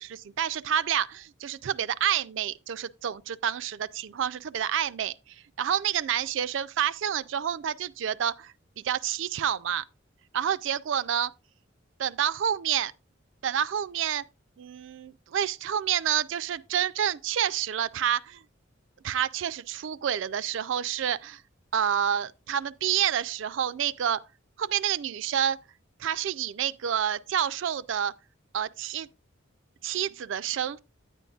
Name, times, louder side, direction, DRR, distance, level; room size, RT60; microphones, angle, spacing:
voice 1, 0.1-8.5 8.8-9.8 10.3-11.3 12.0-12.9 13.4-14.2 14.6-18.4 19.0-21.4 21.7-24.2 24.6-25.6 26.0-28.1 28.5-29.1 29.8-30.8, right 9 dB, 70° right, 0.4 m, -28 dB
9.6 x 9.1 x 2.3 m
head